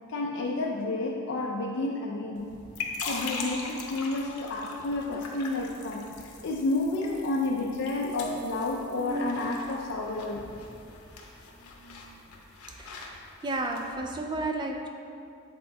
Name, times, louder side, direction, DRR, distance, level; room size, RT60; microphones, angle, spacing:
voice 1, 0.1-2.6 3.1-10.5, left 2 dB, 55° left, -2 dB, 0.5 m, -30 dB
sound 1, 2.4-13.9, left 4 dB, 90° left, 0.8 m, -41 dB
sound 2, 2.4-3.3 3.5-3.7 4.0-4.2 4.5-4.6 4.8-5.0 5.7-6.7 7.4-7.5 7.8-7.9 8.2-9.3 10.2-11.2, right 2 dB, 55° right, 0.7 m, -42 dB
voice 2, 12.8-13.2 13.4-14.9, right 2 dB, 20° right, 3 dB, 0.3 m, -32 dB
7.9 x 3.8 x 4.0 m, 2.5 s
head